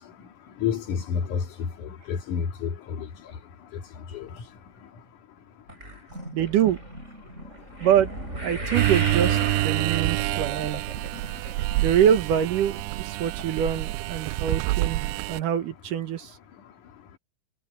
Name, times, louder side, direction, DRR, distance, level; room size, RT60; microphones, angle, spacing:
voice 1, 0.6-1.5 1.8-3.1 4.1-4.3, left 7 dB, 55° left, 3.2 m, -29 dB
sound 1, 5.7-12.1 12.3-12.8 13.4-13.5 13.8-13.9, right 1 dB, 15° right, 7.8 m, -35 dB
voice 2, 6.3-6.8 7.8-8.1 8.4-10.8 11.8-15.0 15.3-16.4, right 9 dB, 65° right, 2.5 m, -24 dB
sound 2, 8.7-15.4, right 19 dB, 85° right, 2.4 m, -27 dB
omnidirectional pair, 4.8 m